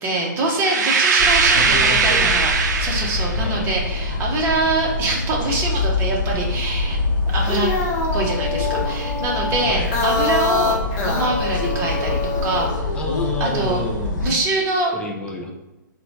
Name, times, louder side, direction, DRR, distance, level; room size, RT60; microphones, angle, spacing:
voice 1, 0.0-7.0 7.3-7.7 8.1-13.0 13.4-13.8 14.2-14.9, right 2 dB, 20° right, -2 dB, 0.8 m, -24 dB
sound 1, 0.6-3.4, right 5 dB, 60° right, 0.4 m, -19 dB
sound 2, 1.2-14.3, left 2 dB, 65° left, 0.7 m, -25 dB
voice 2, 1.5-2.3 3.3-3.8 9.7-9.9 12.9-14.4 14.9-15.5, left 2 dB, 10° left, 1 dB, 0.4 m, -29 dB
sound 3, 7.3-12.8, left 3 dB, 35° left, 0.8 m, -25 dB
4.1 x 2.2 x 2.8 m, 1.0 s
figure-of-eight pair, 125°, 11 cm